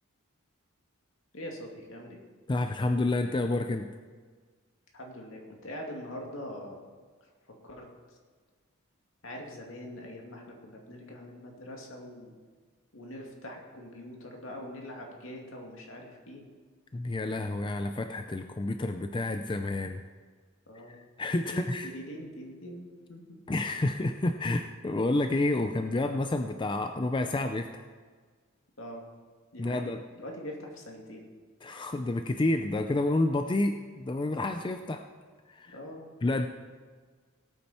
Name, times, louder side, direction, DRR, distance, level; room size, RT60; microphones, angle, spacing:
voice 1, 1.3-2.2 4.9-6.8 7.6-7.9 9.2-12.3 12.9-16.4 20.7-21.0 21.5-23.2 28.8-29.0 29.5-31.3 35.7-36.0, equal, 65° left, 0 dB, 2.5 m, -43 dB
voice 2, 2.5-3.9 16.9-20.0 20.9-21.9 23.5-27.8 29.6-30.0 31.6-35.0 35.5-35.8 36.2-36.5, left 2 dB, 25° left, 7 dB, 0.4 m, -29 dB
18.5 x 8.7 x 4.4 m, 1.5 s
head